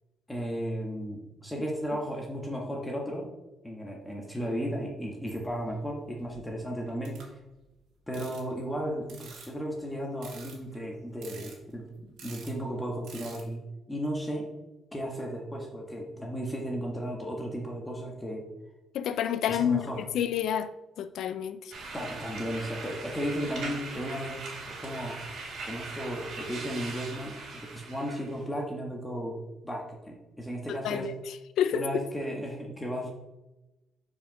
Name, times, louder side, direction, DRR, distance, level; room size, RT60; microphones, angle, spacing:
voice 1, 0.3-3.3 3.6-7.2 8.1-11.8 12.2-13.6 13.9-14.6 14.9-18.5 19.5-20.0 21.9-25.1 25.7-31.1 31.7-33.1, equal, 10° left, 1.5 m, -35 dB
sound 1, 5.3-5.9 6.2-6.5 6.8-7.6 8.1-8.5 9.1-9.8 10.2-10.8 11.2-11.9 12.2-12.5 13.0-13.5, right 5 dB, 85° right, 1.9 m, -48 dB
voice 2, 18.9-20.7 21.0-21.7 30.7-31.1 31.6-31.8, left 9 dB, 80° left, 0.5 m, -29 dB
sound 2, 21.7-28.4, right 3 dB, 65° right, 2.3 m, -40 dB
5.1 x 5.0 x 6.2 m
cardioid pair, 90°, 0 cm